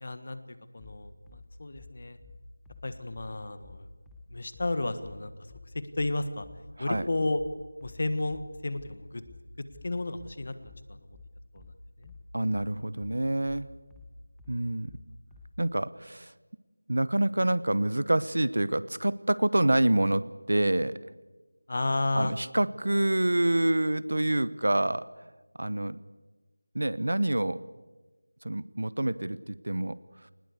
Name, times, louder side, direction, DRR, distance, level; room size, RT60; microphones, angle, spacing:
voice 1, 0.0-0.4 0.7-2.2 2.8-3.9 4.3-5.3 5.7-6.5 6.8-7.4 7.8-9.2 9.8-11.0 11.5-11.6 12.0-12.1 21.7-22.3, left 2 dB, 40° left, 12 dB, 1.4 m, -32 dB
sound 1, 0.8-15.6, left 3 dB, 5° left, 0.9 m, -51 dB
voice 2, 6.8-7.1 12.3-13.7 14.5-14.9 15.6-16.3 16.9-21.0 22.1-25.1 25.6-26.0 26.7-27.6 28.4-30.0, right 1 dB, 70° right, 18 dB, 0.9 m, -27 dB
21.0 x 20.0 x 8.1 m, 1.2 s
figure-of-eight pair, 175°, 0 cm